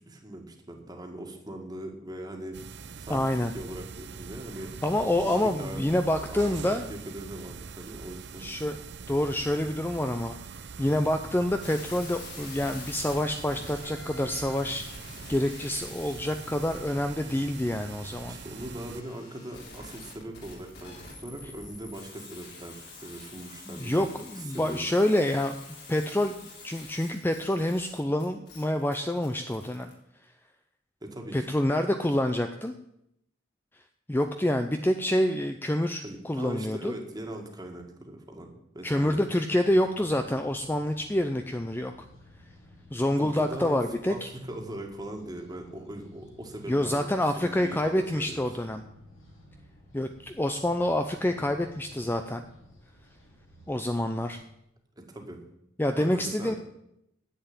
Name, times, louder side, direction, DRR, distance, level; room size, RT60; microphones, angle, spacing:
voice 1, 0.0-2.6 3.0-5.3 5.6-5.9 6.2-8.5 18.3-24.1 24.4-24.9 31.0-31.5 36.0-39.3 43.2-47.1 47.4-48.4 55.0-55.4 55.9-56.6, right 1 dB, 20° right, 3 dB, 1.9 m, -40 dB
sound 1, 2.5-19.0, right 5 dB, 55° right, 0.6 m, -43 dB
voice 2, 3.1-3.5 4.8-6.9 8.4-8.8 9.1-18.4 23.7-25.6 25.9-29.9 31.3-32.7 34.1-36.9 38.8-41.9 42.9-44.3 46.7-48.8 49.9-52.4 53.7-54.4 55.8-56.5, left 1 dB, 10° left, 7 dB, 0.5 m, -27 dB
sound 2, 11.6-29.9, left 3 dB, 55° left, 3.6 m, -47 dB
sound 3, 39.6-54.3, left 1 dB, 80° left, 4.5 m, -54 dB
10.0 x 7.9 x 8.9 m, 0.80 s
head